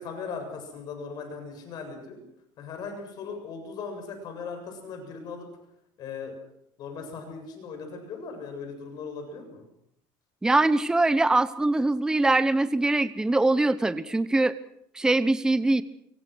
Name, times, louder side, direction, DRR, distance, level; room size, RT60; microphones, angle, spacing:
voice 1, 0.0-2.2 2.6-5.5 6.0-6.4 6.8-9.7, left 5 dB, 45° left, 5 dB, 7.5 m, -38 dB
voice 2, 10.4-14.5 14.9-15.8, right 2 dB, 5° right, 14 dB, 0.8 m, -22 dB
25.0 x 23.5 x 6.3 m, 0.74 s
cardioid pair, 145°, 9 cm